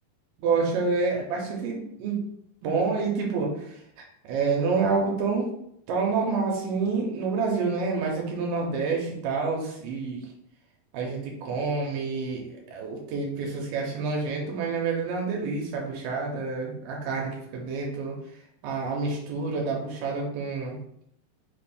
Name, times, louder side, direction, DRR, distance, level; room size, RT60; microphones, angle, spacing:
voice 1, 0.4-2.2 2.6-3.8 4.3-5.5 5.9-10.2 10.9-12.4 12.7-18.1 18.6-20.8, right 4 dB, 85° right, -1 dB, 2.3 m, -28 dB
5.4 x 2.5 x 3.5 m, 0.73 s
omnidirectional pair, 3.9 m